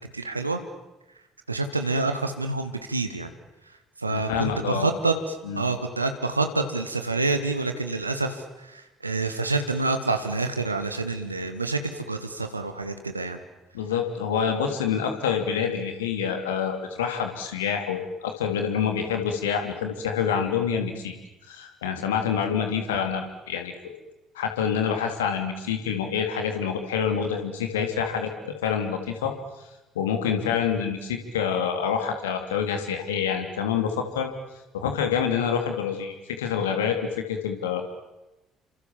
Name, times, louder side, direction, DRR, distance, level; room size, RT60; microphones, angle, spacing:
voice 1, 0.1-0.6 1.5-3.3 4.0-13.4, right 3 dB, 85° right, 7 dB, 1.8 m, -27 dB
voice 2, 4.1-4.9 5.4-5.6 13.7-21.1 21.5-23.9 24.3-29.3 29.9-34.3 34.7-37.8, left 7 dB, 70° left, 5 dB, 3.2 m, -27 dB
30.0 x 26.0 x 7.5 m, 1.0 s
figure-of-eight pair, 50°, 0 cm